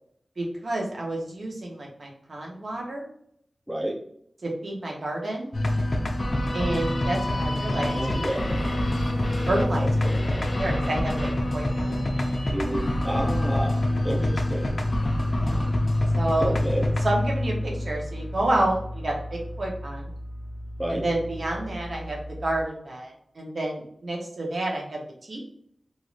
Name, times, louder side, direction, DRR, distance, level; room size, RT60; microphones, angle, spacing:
voice 1, 0.4-3.1 4.4-5.5 6.5-8.0 9.5-9.9 10.4-12.0 15.3-15.7 16.1-16.5 17.0-20.1 20.9-25.0 25.3-25.5, right 1 dB, 65° right, -1 dB, 0.9 m, -29 dB
sound 1, 5.5-22.6, left 1 dB, 50° left, 0.5 m, -27 dB
voice 2, 7.8-8.6 9.8-10.2 12.5-14.7 16.4-16.9 20.8-21.0, right 1 dB, 5° right, 0 dB, 0.6 m, -30 dB
3.1 x 2.6 x 2.5 m, 0.68 s
wide cardioid pair, 55°, 0 cm